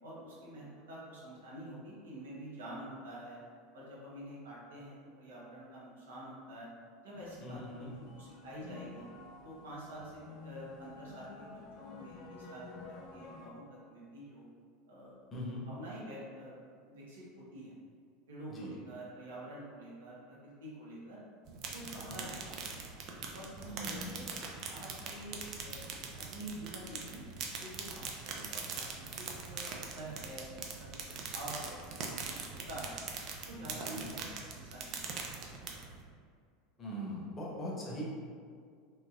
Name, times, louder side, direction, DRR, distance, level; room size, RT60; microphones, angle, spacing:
voice 1, 0.0-3.4 3.7-6.7 7.0-9.1 9.4-14.5 14.9-15.2 15.6-16.5 16.9-17.7 18.3-21.2 21.6-22.7 23.3-24.3 24.7-27.2 27.6-33.0 33.4-34.3 34.6-35.2 35.6-35.9, right 1 dB, 75° right, -6 dB, 0.9 m, -48 dB
sound 1, 7.1-13.5, left 3 dB, 45° left, 0.4 m, -51 dB
voice 2, 7.4-7.9 15.3-15.6 18.5-18.7 22.1-22.2 23.7-24.1 33.8-34.0 36.8-38.0, equal, 25° left, -5 dB, 0.9 m, -41 dB
sound 2, 21.5-36.0, right 5 dB, 50° right, 0.4 m, -42 dB
3.2 x 2.9 x 2.4 m, 2.1 s
figure-of-eight pair, 80°, 0 cm